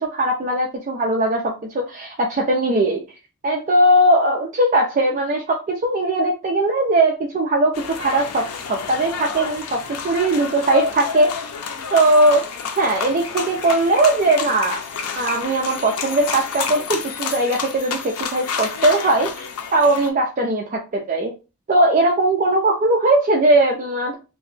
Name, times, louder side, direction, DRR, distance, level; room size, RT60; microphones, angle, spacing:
voice 1, 0.1-3.0 3.4-11.3 11.9-12.4 12.8-14.8 15.2-19.3 19.7-21.3 21.7-24.2, right 1 dB, 35° right, -1 dB, 0.5 m, -19 dB
sound 1, 7.7-20.1, left 6 dB, 85° left, 0.5 m, -29 dB
2.9 x 2.1 x 3.1 m, 0.30 s
head